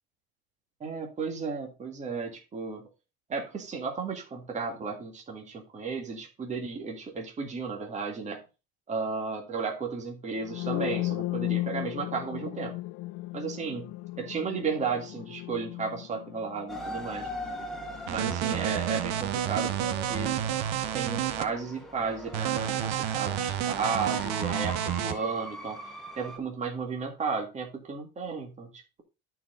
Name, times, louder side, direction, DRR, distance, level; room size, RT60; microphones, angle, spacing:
voice 1, 0.8-2.8 3.3-8.4 8.9-12.7 13.3-13.8 14.2-17.3 18.1-20.4 20.9-25.8 26.2-29.0, right 5 dB, 25° right, 2 dB, 1.9 m, -34 dB
sound 1, 10.4-18.2, left 18 dB, 55° left, 0.5 m, -35 dB
sound 2, 16.7-26.4, left 1 dB, ahead, 1.7 m, -41 dB
sound 3, 18.1-21.4 22.3-25.1, right 11 dB, 70° right, 1.1 m, -30 dB
12.0 x 4.7 x 3.7 m, 0.29 s
cardioid pair, 130°, 30 cm